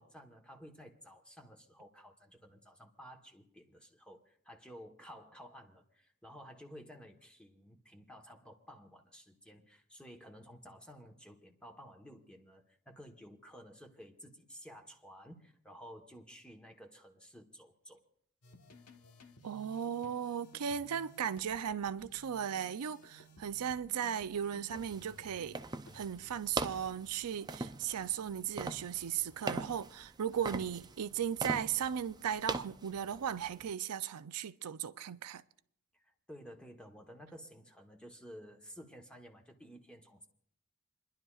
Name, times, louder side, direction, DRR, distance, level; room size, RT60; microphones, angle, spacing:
voice 1, 0.0-18.0 35.9-40.3, equal, 5° left, 1.1 m, -53 dB
sound 1, 18.4-27.1, left 1 dB, 85° left, 1.2 m, -59 dB
voice 2, 19.4-25.6 25.9-35.4, right 8 dB, 85° right, 0.5 m, -36 dB
sound 2, 24.7-33.7, right 3 dB, 20° right, 0.4 m, -42 dB
29.0 x 11.0 x 2.4 m
head